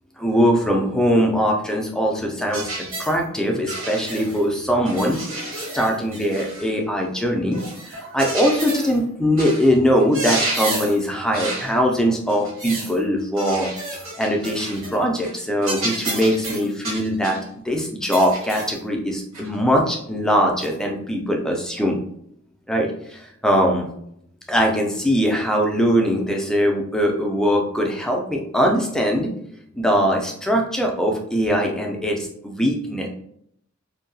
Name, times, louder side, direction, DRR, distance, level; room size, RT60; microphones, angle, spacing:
voice 1, 0.2-2.7 3.0-17.4 17.6-22.0 22.7-23.9 24.5-29.3 29.7-33.1, equal, 5° left, 1 dB, 0.3 m, -21 dB
sound 1, 2.5-3.2 3.7-4.4 4.8-6.7 7.5-9.0 9.4-9.7 10.0-11.0 11.3-11.7 12.3-13.0 13.4-15.0 15.2-15.4 15.6-17.4 18.1-18.8 19.3-19.5 20.6-20.7, right 2 dB, 70° right, 1.4 m, -30 dB
2.7 x 2.2 x 2.6 m, 0.69 s
head